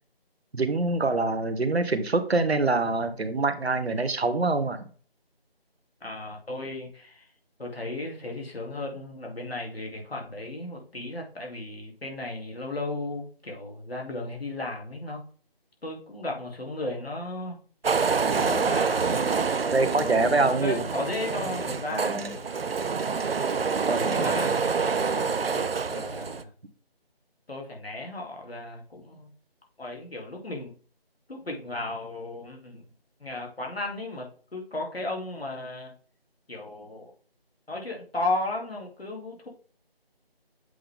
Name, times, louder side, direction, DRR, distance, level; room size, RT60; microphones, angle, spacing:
voice 1, 0.5-4.9 19.6-20.8 21.9-22.3 23.9-24.5, right 3 dB, 90° right, 10 dB, 1.1 m, -25 dB
voice 2, 6.0-7.2 7.6-15.2 15.8-17.6 18.4-19.4 19.8-22.5 24.1-26.5 27.5-29.3 29.8-30.7 31.3-32.8 33.2-35.9 36.5-37.1 37.7-39.5, left 2 dB, 75° left, 0 dB, 2.3 m, -35 dB
sound 1, 17.8-26.4, right 5 dB, 70° right, 0.5 m, -27 dB
7.7 x 3.7 x 3.4 m, 0.42 s
figure-of-eight pair, 180°, 31 cm